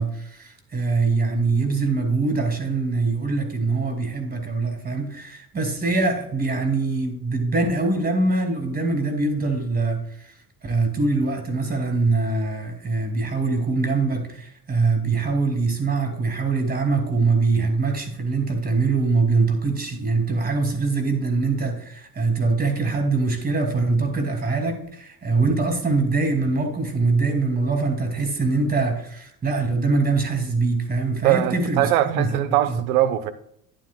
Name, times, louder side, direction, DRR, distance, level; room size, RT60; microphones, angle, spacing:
voice 1, 0.0-10.3 10.6-32.4 32.7-32.8, right 3 dB, 20° right, 2.3 m, -23 dB
voice 2, 31.2-33.3, right 13 dB, 60° right, 0.9 m, -21 dB
11.5 x 11.0 x 2.2 m
figure-of-eight pair, 65°, 47 cm